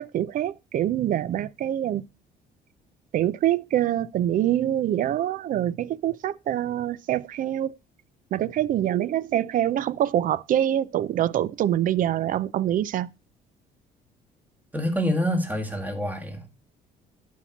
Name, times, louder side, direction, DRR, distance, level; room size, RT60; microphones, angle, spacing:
voice 1, 0.0-2.0 3.1-7.7 8.3-13.1, right 11 dB, 55° right, 0.5 m, -25 dB
voice 2, 14.7-16.5, equal, 10° right, 1.9 m, -26 dB
11.5 x 4.7 x 4.0 m
cardioid pair, 110°, 17 cm